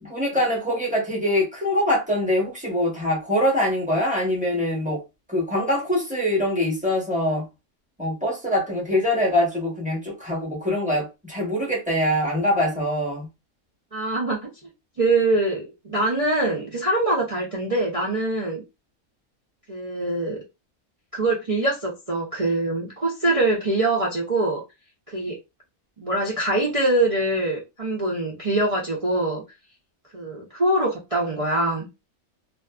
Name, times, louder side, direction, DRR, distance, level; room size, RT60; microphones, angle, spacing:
voice 1, 0.0-5.0 5.3-7.4 8.0-13.3, left 1 dB, 5° right, 0.7 m, -23 dB
voice 2, 13.9-14.5 15.0-18.6 19.7-20.4 21.1-24.6 25.1-25.4 26.0-29.4 30.1-31.9, right 2 dB, 65° right, 0.3 m, -23 dB
2.5 x 2.4 x 2.3 m
omnidirectional pair, 1.5 m